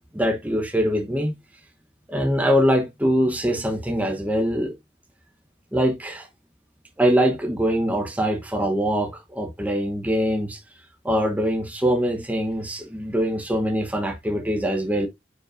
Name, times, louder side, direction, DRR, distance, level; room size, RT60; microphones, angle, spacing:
voice 1, 0.1-1.3 2.1-4.7 5.7-6.3 7.0-10.6 11.0-15.1, equal, 10° right, 1.0 m, -23 dB
9.1 x 5.2 x 2.6 m
head